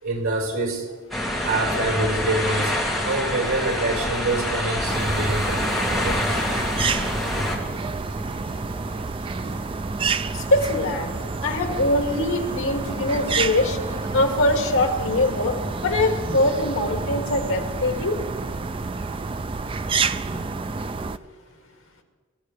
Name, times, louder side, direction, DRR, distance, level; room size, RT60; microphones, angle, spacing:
voice 1, 0.0-0.9 1.4-2.7 3.0-5.7 5.9-6.4 16.2-16.3 19.9-20.4 21.0-21.1, right 2 dB, 90° right, 4.8 m, -26 dB
sound 1, 1.1-7.6, left 1 dB, ahead, 2.5 m, -26 dB
sound 2, 3.4-17.7, left 1 dB, 50° left, 4.4 m, -45 dB
sound 3, 4.9-21.2, right 4 dB, 25° right, 0.3 m, -29 dB
voice 2, 10.3-11.1 11.4-13.8 14.1-18.2, left 2 dB, 70° left, 2.2 m, -23 dB
24.5 x 14.5 x 3.3 m
head